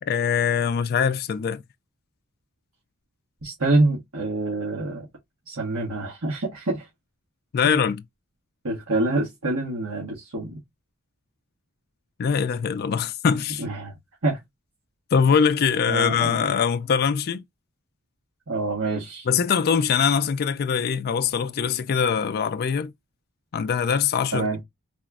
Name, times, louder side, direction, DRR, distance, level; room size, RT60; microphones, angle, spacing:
voice 1, 0.0-1.6 7.5-8.0 12.2-13.6 15.1-17.4 19.3-22.9 23.5-24.5, left 6 dB, 45° left, 0.3 m, -22 dB
voice 2, 3.4-5.0 5.5-6.8 7.6-7.8 8.6-10.6 13.6-13.9 14.2-14.4 15.9-16.5 18.5-19.3 24.3-24.6, right 2 dB, 80° right, 1.5 m, -26 dB
4.2 x 3.0 x 2.4 m
head